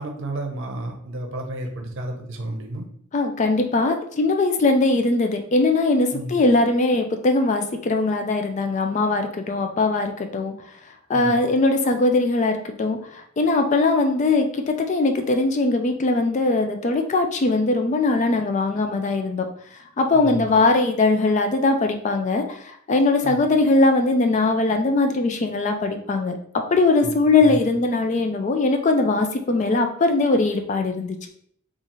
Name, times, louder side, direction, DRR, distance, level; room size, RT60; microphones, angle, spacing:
voice 1, 0.0-2.8 6.1-6.3 11.1-11.3 20.1-20.5 23.2-23.4 27.0-27.1 27.4-27.6, right 1 dB, 60° right, 2 dB, 0.7 m, -31 dB
voice 2, 3.1-10.5 11.1-19.5 20.0-26.4 26.7-31.2, left 3 dB, 35° left, 5 dB, 0.3 m, -20 dB
4.0 x 2.4 x 3.0 m, 0.64 s
head